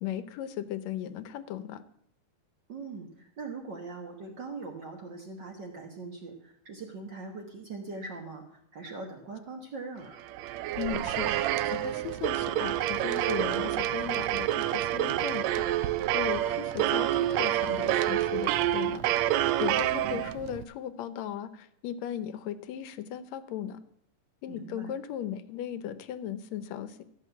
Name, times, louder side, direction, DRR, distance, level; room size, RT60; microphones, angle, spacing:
voice 1, 0.0-1.8 10.8-19.3 19.6-23.8 24.4-27.0, left 10 dB, 75° left, 13 dB, 1.9 m, -37 dB
voice 2, 2.7-10.2 20.0-20.3 24.5-24.9, right 3 dB, 50° right, 2 dB, 1.6 m, -41 dB
sound 1, 10.2-20.6, right 13 dB, 75° right, 1.7 m, -28 dB
14.0 x 6.5 x 8.3 m, 0.73 s
omnidirectional pair, 3.3 m